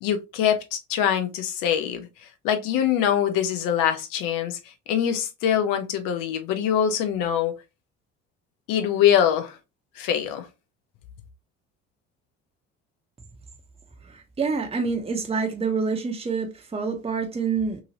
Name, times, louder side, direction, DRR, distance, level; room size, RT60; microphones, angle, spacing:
voice 1, 0.0-2.1 2.4-4.6 4.9-7.5 8.7-9.6 10.0-10.5, left 9 dB, 65° left, 0.8 m, -23 dB
voice 2, 14.0-17.8, right 5 dB, 15° right, 0.8 m, -27 dB
2.9 x 2.7 x 2.8 m
hypercardioid pair, 60°, 36 cm